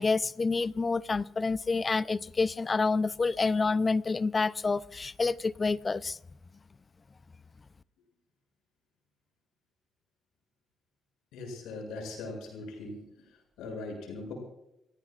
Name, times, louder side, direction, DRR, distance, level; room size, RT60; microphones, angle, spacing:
voice 1, 0.0-6.2, left 4 dB, 30° left, 0.5 m, -28 dB
voice 2, 11.3-13.2 13.6-14.4, left 2 dB, 90° left, 7.2 m, -40 dB
29.5 x 17.5 x 2.5 m
cardioid pair, 90°, 0 cm